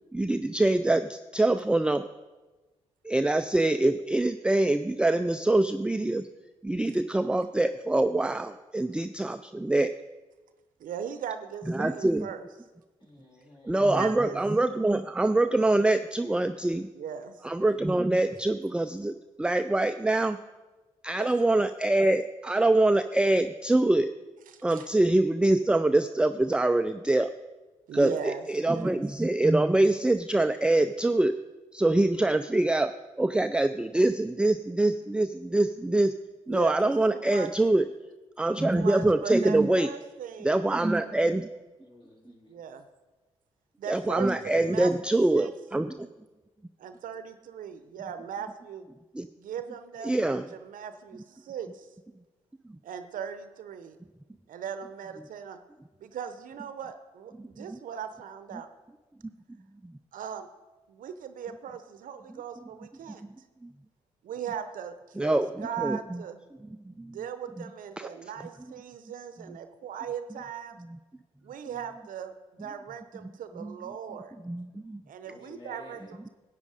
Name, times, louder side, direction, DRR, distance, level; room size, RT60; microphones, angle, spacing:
voice 1, 0.1-2.0 3.0-6.3 6.6-9.9 11.7-12.3 13.6-16.9 17.4-20.4 21.0-24.1 24.6-27.3 27.9-31.4 31.7-32.9 33.2-36.1 36.5-37.9 38.4-39.9 40.4-41.5 43.9-46.1 49.1-49.3 50.0-50.4 57.4-57.8 59.8-59.9 63.2-63.3 63.6-63.7 65.2-66.2 66.8-67.2 68.0-68.1 69.5-69.6 70.9-71.0 73.6-73.8 74.4-75.0, right 2 dB, 5° right, 9 dB, 0.4 m, -25 dB
voice 2, 10.8-12.4 13.9-14.4 16.9-17.6 21.2-21.3 24.5-24.9 27.9-29.0 36.5-37.5 38.6-40.6 42.5-42.8 43.8-44.9 45.3-45.5 46.8-48.9 49.4-51.9 52.8-54.0 54.5-55.6 56.0-58.7 60.1-60.5 60.9-63.2 64.2-66.4 67.1-70.8 71.4-74.3 75.1-76.3, right 8 dB, 70° right, 10 dB, 0.7 m, -39 dB
voice 3, 13.0-13.8 41.8-42.6 75.2-76.1, left 2 dB, 35° left, -2 dB, 3.4 m, -51 dB
10.5 x 8.3 x 5.0 m, 1.2 s
hypercardioid pair, 45°, 15 cm